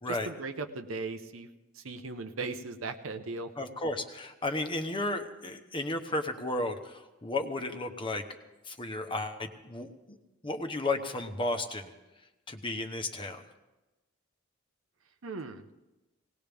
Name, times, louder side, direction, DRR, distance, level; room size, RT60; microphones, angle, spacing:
voice 1, 0.1-1.5 1.7-3.5 15.2-15.6, right 3 dB, 80° right, 8 dB, 0.9 m, -38 dB
voice 2, 3.6-8.2 8.7-10.2 10.4-11.9 12.5-13.4, left 2 dB, 25° left, 6 dB, 1.0 m, -33 dB
18.5 x 18.5 x 3.5 m, 1.1 s
head